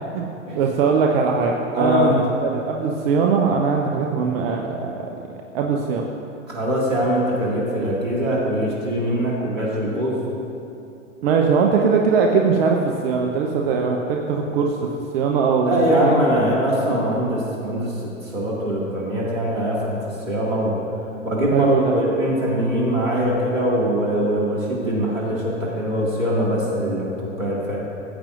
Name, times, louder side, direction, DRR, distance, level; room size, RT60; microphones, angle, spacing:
voice 1, 0.5-5.1 5.5-6.1 11.2-16.4 21.5-21.9, right 5 dB, 50° right, 1 dB, 1.0 m, -21 dB
voice 2, 1.7-2.2 6.5-10.2 15.6-18.0 18.2-20.8 21.2-27.8, equal, 90° right, -5 dB, 2.3 m, -22 dB
16.5 x 8.9 x 2.6 m, 2.7 s
hypercardioid pair, 105°, 38 cm